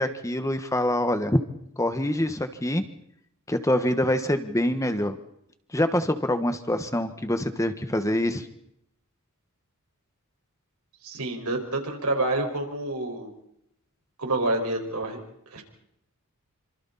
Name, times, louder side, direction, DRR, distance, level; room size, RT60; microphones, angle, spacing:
voice 1, 0.0-1.4 1.8-2.8 3.5-5.2 5.7-8.5, left 1 dB, 15° left, 9 dB, 1.4 m, -25 dB
voice 2, 11.0-13.3 14.2-15.2 15.5-15.6, right 2 dB, 85° right, 2 dB, 5.5 m, -28 dB
28.0 x 26.0 x 4.2 m, 0.77 s
head